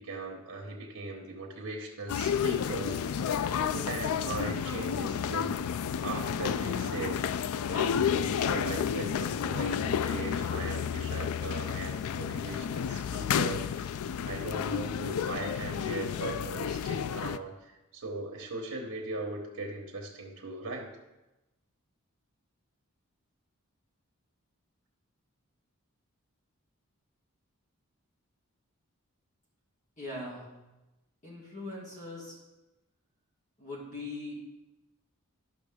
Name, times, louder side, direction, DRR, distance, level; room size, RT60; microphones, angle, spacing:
voice 1, 0.0-3.0 3.4-5.6 6.0-7.2 7.7-13.9 14.2-20.9, right 2 dB, 85° right, -1 dB, 1.2 m, -39 dB
sound 1, 2.1-17.4, left 8 dB, 75° left, 0.3 m, -31 dB
voice 2, 30.0-30.5 31.2-32.4 33.6-34.3, left 2 dB, 35° left, -4 dB, 2.3 m, -40 dB
11.0 x 6.0 x 3.6 m, 1.0 s
head